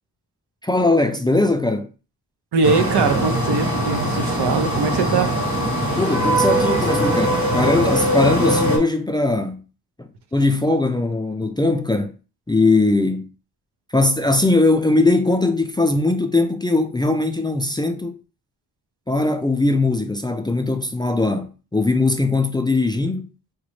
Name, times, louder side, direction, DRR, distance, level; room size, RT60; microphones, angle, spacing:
voice 1, 0.6-1.9 6.0-9.6 10.0-12.1 12.5-13.3 13.9-18.2 19.1-23.3, left 2 dB, 10° left, 0.4 m, -20 dB
voice 2, 2.5-5.3, right 4 dB, 70° right, 0.7 m, -21 dB
sound 1, 2.6-8.8, right 1 dB, 35° right, 1.6 m, -21 dB
4.9 x 2.1 x 3.1 m
cardioid pair, 70°, 41 cm